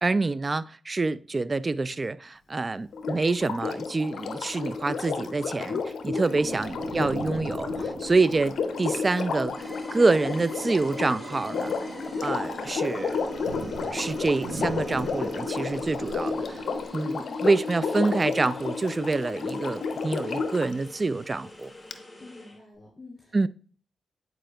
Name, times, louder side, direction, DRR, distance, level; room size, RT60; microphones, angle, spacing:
voice 1, 0.0-11.7 12.2-13.2 13.9-16.6 16.9-21.7 23.3-23.5, right 3 dB, 35° right, 0.3 m, -27 dB
Sink (filling or washing), 2.9-20.7 21.9-22.0, left 5 dB, 70° left, 0.5 m, -32 dB
voice 2, 6.2-6.6 6.8-7.0 17.1-17.5 22.2-23.5, left 2 dB, 35° left, 3.0 m, -47 dB
sound 1, 6.3-16.9, right 3 dB, 80° right, 0.9 m, -40 dB
sound 2, 9.4-22.6, left 1 dB, 15° left, 2.0 m, -48 dB
9.9 x 4.6 x 2.3 m
supercardioid pair, 45°, 0 cm